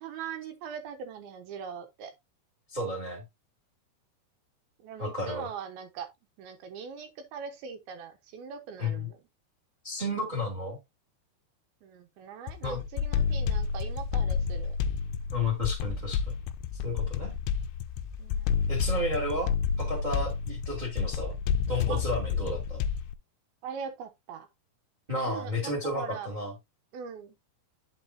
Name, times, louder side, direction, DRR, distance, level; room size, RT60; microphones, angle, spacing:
voice 1, 0.0-2.1 4.8-6.1 6.4-9.2 11.8-14.8 18.2-18.6 21.9-22.0 23.6-24.5 25.2-26.3 26.9-27.4, right 6 dB, 75° right, 2.8 m, -41 dB
voice 2, 2.7-3.2 5.0-5.5 8.8-9.1 9.8-10.8 12.6-12.8 15.3-16.3 16.8-17.3 18.7-19.5 19.8-21.4 21.7-22.8 25.1-26.5, left 1 dB, 15° right, 1.5 m, -32 dB
sound 1, 12.5-23.1, left 6 dB, 80° left, 2.3 m, -30 dB
9.1 x 6.0 x 2.6 m
omnidirectional pair, 4.7 m